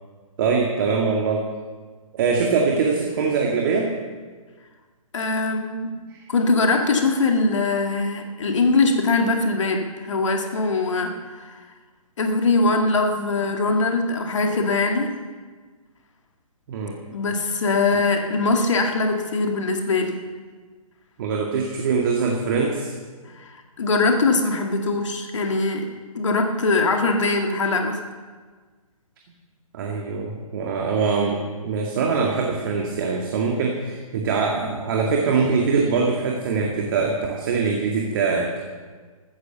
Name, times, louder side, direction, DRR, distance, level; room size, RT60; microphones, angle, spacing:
voice 1, 0.4-1.5 2.1-3.9 6.1-6.3 16.7-17.0 21.2-22.9 29.7-38.5, right 5 dB, 35° right, 0 dB, 2.2 m, -23 dB
voice 2, 5.1-5.9 6.3-11.6 12.2-15.1 17.1-20.1 23.4-28.0, left 3 dB, 55° left, 3 dB, 2.1 m, -22 dB
14.5 x 14.0 x 7.0 m, 1.5 s
figure-of-eight pair, 135°, 19 cm